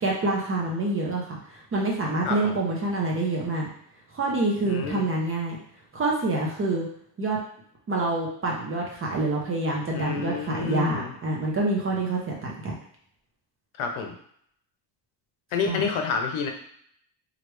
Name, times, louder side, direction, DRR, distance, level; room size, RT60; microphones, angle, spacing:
voice 1, 0.0-3.7 4.1-5.6 5.9-6.9 7.2-7.4 7.9-12.7 15.7-15.8, right 2 dB, 25° right, -2 dB, 0.6 m, -27 dB
voice 2, 2.2-2.6 4.6-5.1 9.9-11.1 13.8-14.1 15.5-16.5, left 6 dB, 80° left, 4 dB, 0.7 m, -29 dB
3.1 x 2.4 x 3.1 m, 0.65 s
cardioid pair, 165°, 48 cm